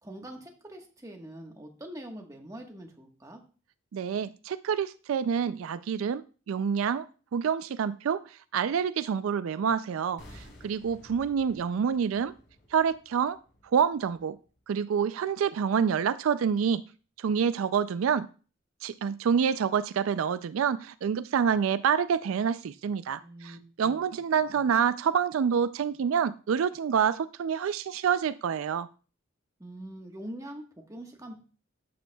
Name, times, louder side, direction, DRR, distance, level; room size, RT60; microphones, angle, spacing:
voice 1, 0.0-3.4 23.2-24.0 24.4-24.7 29.6-31.4, right 1 dB, 15° right, 1.3 m, -44 dB
voice 2, 3.9-7.1 7.3-12.3 12.7-13.4 13.7-14.4 14.7-16.8 17.2-18.3 18.8-28.9, right 7 dB, 80° right, 0.3 m, -27 dB
sound 1, 10.2-15.2 15.4-15.6, left 1 dB, 55° left, 3.4 m, -54 dB
12.5 x 8.6 x 2.3 m
head